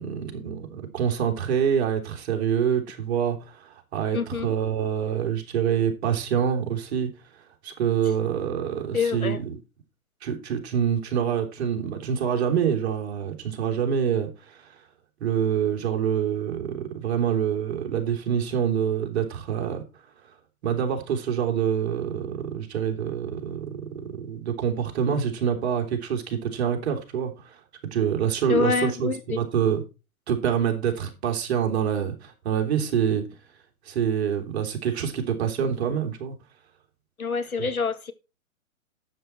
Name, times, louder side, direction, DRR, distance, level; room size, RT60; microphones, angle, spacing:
voice 1, 0.0-7.1 7.6-9.5 10.2-14.8 15.2-19.8 20.6-27.6 27.9-29.8 30.3-33.2 33.8-36.3, right 8 dB, 50° right, 4 dB, 3.5 m, -26 dB
voice 2, 4.1-4.5 8.9-9.4 28.5-29.4 37.2-38.1, left 5 dB, 85° left, 11 dB, 1.9 m, -26 dB
12.5 x 8.4 x 4.4 m, 0.30 s
figure-of-eight pair, 125°, 42 cm